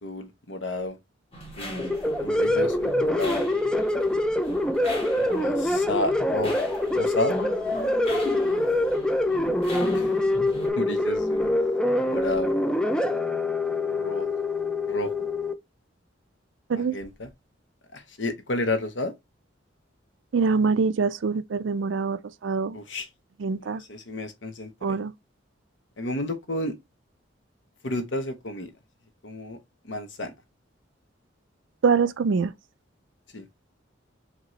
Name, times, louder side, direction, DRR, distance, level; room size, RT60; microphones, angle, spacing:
voice 1, 0.0-1.0 1.6-3.4 5.1-6.6 6.9-7.4 9.9-10.1 10.7-11.5 12.1-12.6 13.8-14.3 14.9-15.1 16.7-17.3 17.9-19.1 22.7-23.1 23.6-25.0 26.0-26.8 27.8-28.7 29.2-29.6 29.8-30.3 33.3-33.5, left 1 dB, 70° left, 1.0 m, -31 dB
sound 1, 1.3-10.7, left 1 dB, 30° left, 1.7 m, -38 dB
sound 2, 1.8-15.5, left 1 dB, 5° left, 0.4 m, -25 dB
voice 2, 20.3-22.8 23.4-23.8 24.8-25.1 31.8-32.5, right 5 dB, 75° right, 0.4 m, -24 dB
5.2 x 3.0 x 3.1 m
head